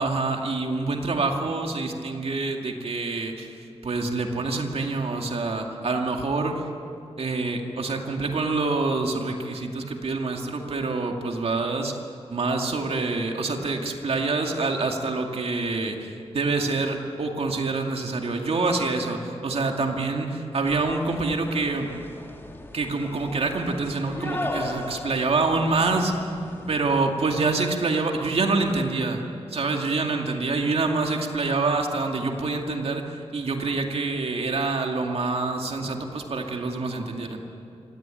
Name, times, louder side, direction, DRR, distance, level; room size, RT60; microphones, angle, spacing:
voice 1, 0.0-3.6 3.8-6.6 7.2-11.9 12.3-21.9 22.7-26.1 26.7-37.4, right 3 dB, 65° right, 2 dB, 2.3 m, -26 dB
sound 1, 20.7-27.2, left 1 dB, 20° left, 1.8 m, -37 dB
26.0 x 18.0 x 9.0 m, 2.6 s
wide cardioid pair, 160°, 11 cm